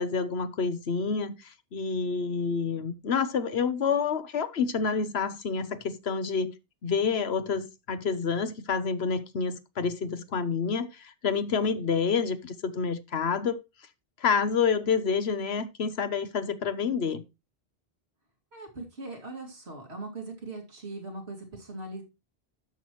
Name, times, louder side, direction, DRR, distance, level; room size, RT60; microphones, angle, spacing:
voice 1, 0.0-6.5 6.8-13.6 14.2-17.2, left 5 dB, 75° left, 1.2 m, -28 dB
voice 2, 18.5-22.0, right 2 dB, 80° right, 2.6 m, -40 dB
12.5 x 6.1 x 3.0 m
omnidirectional pair, 1.1 m